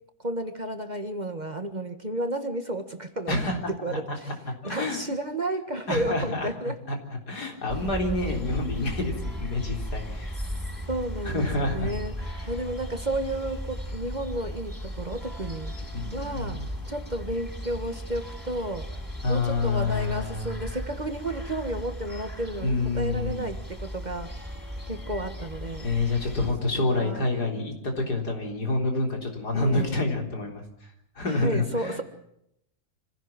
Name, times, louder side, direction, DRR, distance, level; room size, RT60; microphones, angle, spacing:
voice 1, 0.2-3.4 3.7-4.4 4.6-6.8 10.9-15.8 16.1-18.9 19.3-24.3 24.9-25.9 26.8-27.3 29.5-30.0 31.3-32.0, right 1 dB, 30° right, 7 dB, 1.6 m, -32 dB
voice 2, 3.3-3.6 3.9-4.0 4.3-4.4 4.6-5.0 5.9-6.5 6.9-7.0 7.3-10.3 11.3-11.9 12.2-12.5 15.9-16.7 19.2-20.5 22.6-23.5 25.8-30.6 31.2-32.0, left 2 dB, 80° left, 2 dB, 4.5 m, -28 dB
sound 1, 7.7-26.5, equal, 5° right, 5.8 m, -36 dB
25.5 x 16.5 x 7.4 m, 0.76 s
omnidirectional pair, 1.7 m